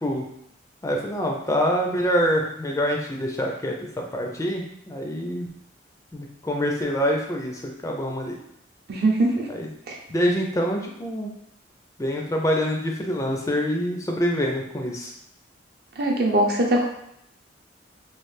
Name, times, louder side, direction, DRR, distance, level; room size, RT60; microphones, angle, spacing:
voice 1, 0.8-3.7 4.1-5.5 6.1-8.4 9.5-9.7 10.1-11.3 12.0-15.1, equal, 15° left, 1 dB, 0.4 m, -25 dB
voice 2, 8.9-9.5 9.9-10.0 16.0-16.8, right 1 dB, 55° right, 0 dB, 0.6 m, -21 dB
3.1 x 2.4 x 3.2 m, 0.74 s
head